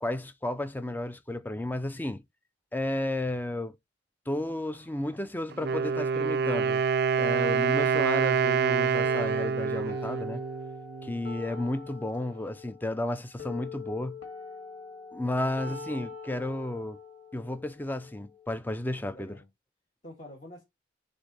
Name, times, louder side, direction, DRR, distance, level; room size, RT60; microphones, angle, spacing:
voice 1, 0.0-2.2 2.7-3.8 4.3-6.8 7.2-10.4 11.0-14.2 15.1-17.0 17.3-19.4, left 1 dB, 10° left, 0.4 m, -33 dB
Wind instrument woodwind instrument, 5.5-11.3, right 6 dB, 55° right, 0.4 m, -27 dB
sound 1, 9.0-19.0, left 5 dB, 70° left, 2.1 m, -44 dB
voice 2, 15.3-16.0 18.9-19.5 20.0-20.6, left 1 dB, 40° left, 1.8 m, -48 dB
6.9 x 2.7 x 5.3 m
head